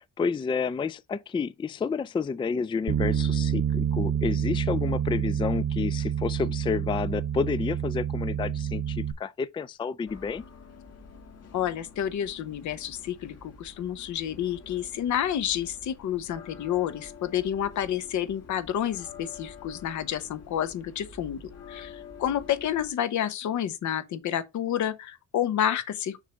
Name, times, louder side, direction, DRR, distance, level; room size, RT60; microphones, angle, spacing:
voice 1, 0.0-10.4, left 5 dB, 15° left, 0.3 m, -30 dB
Bass guitar, 2.9-9.1, right 9 dB, 45° right, 0.9 m, -28 dB
sound 1, 10.1-22.9, left 5 dB, 55° left, 1.7 m, -48 dB
voice 2, 11.5-21.4 21.7-26.2, left 10 dB, 70° left, 1.0 m, -29 dB
6.4 x 3.2 x 5.1 m
cardioid pair, 90°, 30 cm